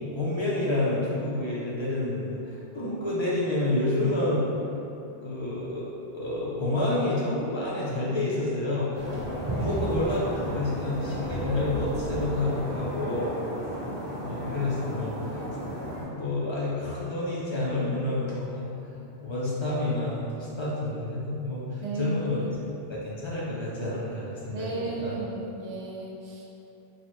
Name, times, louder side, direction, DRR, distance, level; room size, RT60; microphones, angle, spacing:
voice 1, 0.1-4.5 5.2-5.9 6.1-8.9 9.5-10.3 10.5-13.3 14.2-15.2 15.7-15.8 16.1-18.7 19.2-22.5 22.9-25.1, left 2 dB, 50° left, -7 dB, 0.3 m, -29 dB
sound 1, 8.9-16.0, equal, 35° right, 1.0 m, -33 dB
voice 2, 9.5-9.8 21.8-22.7 24.5-26.6, right 2 dB, 70° right, -4 dB, 0.8 m, -34 dB
3.9 x 2.1 x 2.9 m, 2.8 s
omnidirectional pair, 1.1 m